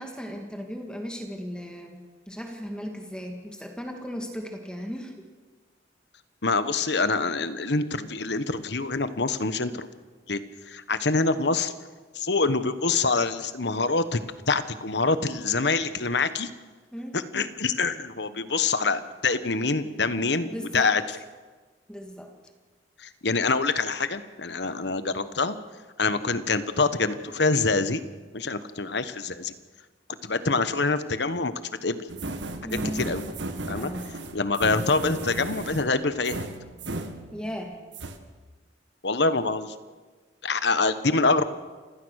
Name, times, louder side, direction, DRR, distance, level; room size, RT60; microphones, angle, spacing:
voice 1, 0.0-2.0 2.3-5.1 16.9-17.2 20.4-21.0 21.9-22.3 32.6-33.1 33.7-34.1 37.3-37.8, equal, 5° left, 2 dB, 2.3 m, -36 dB
voice 2, 6.4-9.9 10.3-11.7 12.1-14.2 14.5-16.5 17.1-21.0 23.0-25.6 26.0-28.0 28.3-29.5 30.2-32.1 32.9-33.2 33.7-33.9 34.3-36.5 39.0-39.7 40.4-41.4, left 3 dB, 70° left, 12 dB, 1.2 m, -25 dB
sound 1, 32.1-37.7 37.9-38.2, right 2 dB, 80° right, 1.7 m, -35 dB
29.0 x 16.5 x 6.5 m, 1.3 s
head